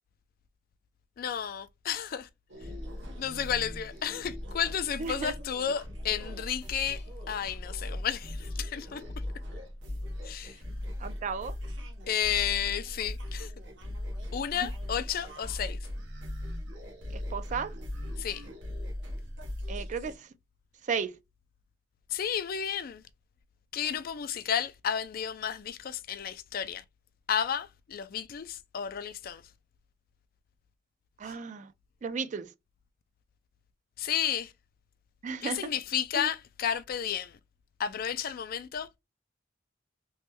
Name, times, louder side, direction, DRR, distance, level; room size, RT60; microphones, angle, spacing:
voice 1, 1.2-2.3 3.2-9.0 10.2-10.6 12.1-13.5 14.3-15.8 18.2-18.5 22.1-23.0 23.7-26.8 27.3-29.4 34.0-34.5 35.4-37.4 37.8-38.9, left 8 dB, 50° left, 0.4 m, -32 dB
sound 1, 2.5-20.2, left 1 dB, 85° right, 1.0 m, -39 dB
voice 2, 5.0-5.3 11.0-11.6 14.5-14.7 17.1-17.8 19.7-20.3 20.8-21.2 31.2-31.7 32.0-32.5 35.2-35.7 36.1-36.3, right 5 dB, 40° right, 0.4 m, -34 dB
3.1 x 2.2 x 3.0 m
head